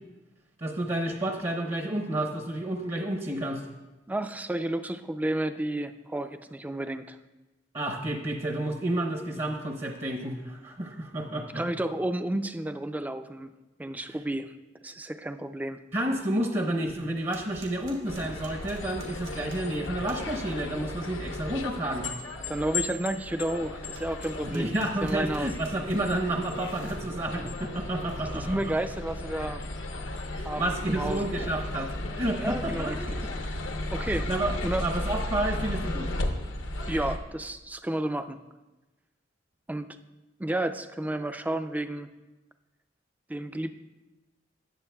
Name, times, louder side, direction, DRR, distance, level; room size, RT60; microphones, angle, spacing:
voice 1, 0.6-3.6 7.7-11.7 14.1-14.2 15.9-22.1 24.4-28.7 30.3-33.3 34.3-36.1, right 1 dB, 35° right, 2 dB, 0.8 m, -30 dB
voice 2, 4.1-7.2 11.5-13.5 13.8-14.5 14.8-15.8 22.5-24.7 25.0-25.5 28.3-29.6 30.5-31.3 32.4-33.2 33.9-34.3 34.6-34.9 36.9-38.4 39.7-39.9 40.4-42.1 43.3-43.8, right 1 dB, 10° right, 9 dB, 0.3 m, -31 dB
sound 1, 16.9-20.8 23.9-27.1 27.8-28.4, right 1 dB, 80° right, 1.6 m, -49 dB
sound 2, 18.1-37.2, left 2 dB, 85° left, 0.8 m, -35 dB
18.0 x 7.0 x 2.3 m, 1.1 s
head